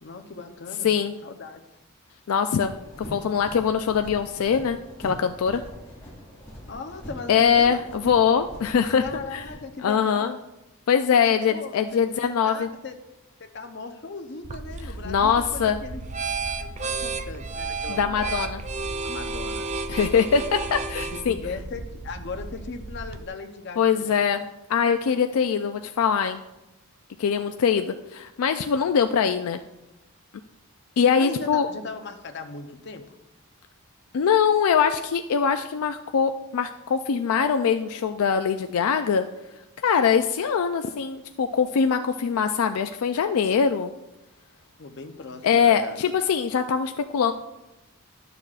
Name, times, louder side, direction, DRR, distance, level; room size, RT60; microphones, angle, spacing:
voice 1, 0.0-0.9 1.2-1.7 6.7-7.8 9.0-10.4 11.5-12.9 13.4-16.0 16.4-18.5 19.0-19.7 21.3-24.4 31.2-33.2 44.8-46.0, left 4 dB, 50° left, 5 dB, 0.7 m, -38 dB
voice 2, 0.8-1.2 2.3-5.6 7.3-9.0 9.3-9.4 9.8-10.3 10.9-12.7 15.0-15.8 17.9-18.6 19.9-21.4 23.8-26.4 27.2-29.6 31.0-31.7 34.1-39.3 39.8-43.9 45.4-47.3, left 7 dB, 80° left, 7 dB, 0.4 m, -22 dB
sound 1, 2.6-9.5, equal, 10° left, 2.7 m, -43 dB
sound 2, 14.4-23.3, right 3 dB, 30° right, 0.4 m, -33 dB
12.0 x 6.8 x 2.4 m, 0.96 s
head